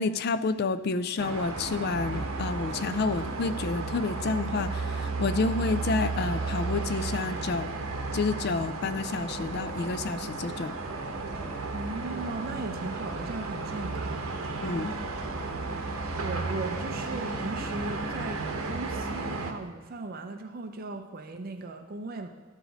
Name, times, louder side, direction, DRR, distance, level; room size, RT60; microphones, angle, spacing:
voice 1, 0.0-7.7 8.1-10.8 14.6-14.9, left 4 dB, 50° left, 12 dB, 0.4 m, -29 dB
sound 1, 1.2-19.5, right 3 dB, 85° right, 0.9 m, -33 dB
voice 2, 11.7-14.5 15.7-22.3, right 3 dB, 45° right, 6 dB, 0.5 m, -38 dB
12.0 x 4.9 x 3.9 m, 1.4 s
head